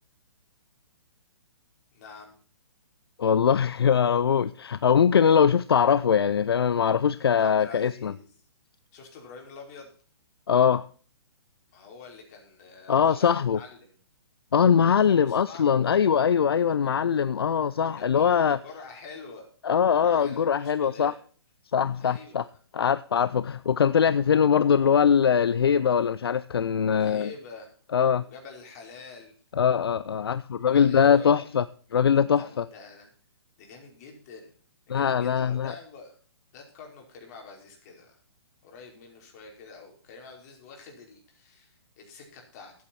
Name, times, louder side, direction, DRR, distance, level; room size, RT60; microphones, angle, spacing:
voice 1, 1.9-2.4 7.2-8.2 8.9-9.9 11.7-13.9 15.0-16.0 17.8-19.5 19.9-21.2 22.0-22.5 26.9-27.7 28.2-29.3 30.7-31.3 32.4-33.1 33.6-34.5 34.9-36.2 36.5-38.2 38.6-42.7, left 4 dB, 40° left, 5.1 m, -46 dB
voice 2, 3.2-8.1 10.5-10.9 12.9-13.6 14.5-18.6 19.6-21.1 21.7-22.4 22.7-27.3 27.9-28.2 29.6-31.6 31.9-32.6 34.9-35.7, left 7 dB, 65° left, 0.6 m, -22 dB
15.0 x 8.6 x 4.4 m
figure-of-eight pair, 125°, 14 cm